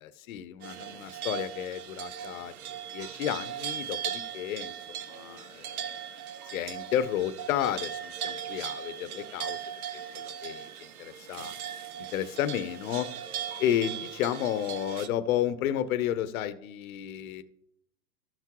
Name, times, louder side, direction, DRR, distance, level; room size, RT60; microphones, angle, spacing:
voice 1, 0.0-2.5 2.9-4.7 5.1-6.1 6.5-9.6 10.1-10.7 11.0-11.5 12.1-13.1 13.6-17.4, left 11 dB, 70° left, 11 dB, 0.8 m, -32 dB
sound 1, 0.6-15.1, right 9 dB, 85° right, 0.9 m, -38 dB
14.0 x 6.0 x 3.0 m, 0.73 s
supercardioid pair, 155°, 43 cm